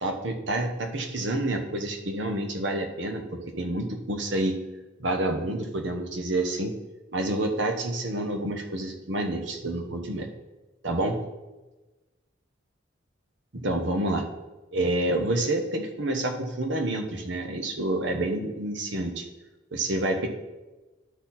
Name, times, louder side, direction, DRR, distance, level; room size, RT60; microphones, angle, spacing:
voice 1, 0.0-4.6 5.0-6.7 7.1-10.3 10.8-11.2 13.5-14.3 14.7-19.2 19.7-20.3, right 1 dB, 70° right, 4 dB, 1.1 m, -28 dB
12.0 x 4.1 x 4.2 m, 1.1 s
head